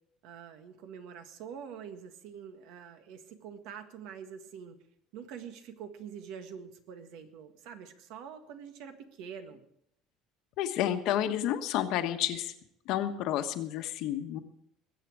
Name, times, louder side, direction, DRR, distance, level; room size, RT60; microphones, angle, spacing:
voice 1, 0.2-4.8 5.1-9.6, right 7 dB, 70° right, 7 dB, 1.6 m, -45 dB
voice 2, 10.6-12.5 12.9-14.4, left 11 dB, 65° left, 7 dB, 1.3 m, -30 dB
21.0 x 8.4 x 4.8 m, 0.73 s
cardioid pair, 150°, 0 cm